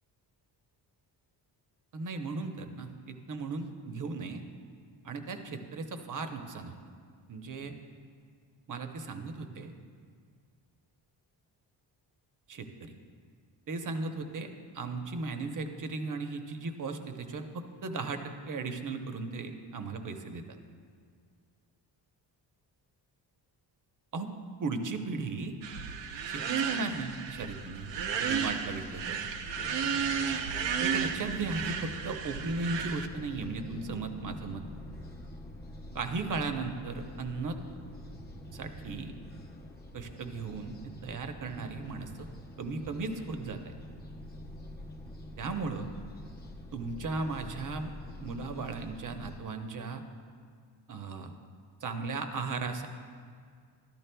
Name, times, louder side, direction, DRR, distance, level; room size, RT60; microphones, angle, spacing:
voice 1, 1.9-4.4 5.0-6.8 7.3-7.8 8.7-9.7 12.5-12.9 13.7-14.5 14.7-18.2 18.5-20.4 24.1-24.3 24.6-25.5 26.3-27.9 28.2-29.2 30.8-34.6 35.9-37.6 38.5-39.1 39.9-42.3 42.6-43.7 45.4-45.9 46.7-47.9 48.2-50.0 50.9-51.3 51.8-52.9, right 3 dB, 45° right, 6 dB, 0.9 m, -36 dB
sound 1, 25.6-33.1, right 7 dB, 80° right, 0.7 m, -33 dB
sound 2, 29.5-49.4, left 1 dB, 25° left, 0.8 m, -46 dB
13.5 x 12.5 x 2.3 m, 2.1 s
cardioid pair, 110°, 42 cm